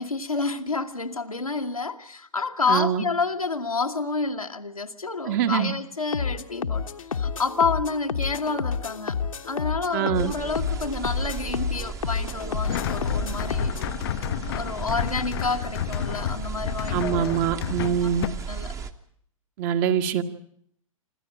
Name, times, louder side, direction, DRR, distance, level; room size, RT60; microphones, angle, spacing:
voice 1, 0.0-9.2 9.5-13.7 14.5-17.4 17.8-18.1 18.5-18.8, left 4 dB, 85° left, 4 dB, 1.6 m, -29 dB
voice 2, 2.7-3.0 5.3-5.7 9.9-10.3 16.9-18.2 19.6-20.2, right 9 dB, 35° right, 8 dB, 1.6 m, -24 dB
sound 1, 6.1-13.9, left 6 dB, 70° left, 1.3 m, -30 dB
sound 2, 10.1-18.9, right 5 dB, 15° right, 1.2 m, -35 dB
sound 3, 12.6-18.3, left 11 dB, 45° left, 0.8 m, -31 dB
26.0 x 14.0 x 8.9 m, 0.68 s
figure-of-eight pair, 110°, 18 cm